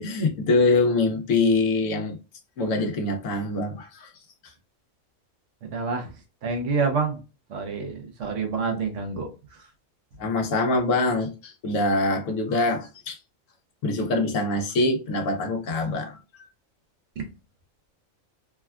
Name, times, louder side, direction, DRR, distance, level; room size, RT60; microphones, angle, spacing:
voice 1, 0.0-2.2 2.6-4.1 10.2-13.2 13.8-16.2, left 2 dB, 75° left, 1.1 m, -24 dB
voice 2, 5.6-6.1 6.4-7.2 7.5-9.3 17.2-17.3, right 4 dB, 70° right, 1.0 m, -27 dB
3.5 x 2.2 x 2.3 m
omnidirectional pair, 1.4 m